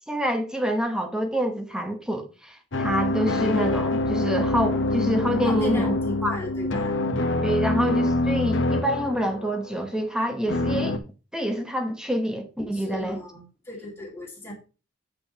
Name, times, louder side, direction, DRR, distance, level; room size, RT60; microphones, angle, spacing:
voice 1, 0.1-5.9 6.2-6.4 7.4-11.0 11.3-13.2, equal, 5° right, 1.0 m, -27 dB
sound 1, 2.7-9.8 10.5-11.0, left 2 dB, 60° left, 0.9 m, -25 dB
voice 2, 5.5-6.9 12.7-14.5, left 1 dB, 10° left, 2.1 m, -37 dB
8.4 x 7.8 x 2.9 m
head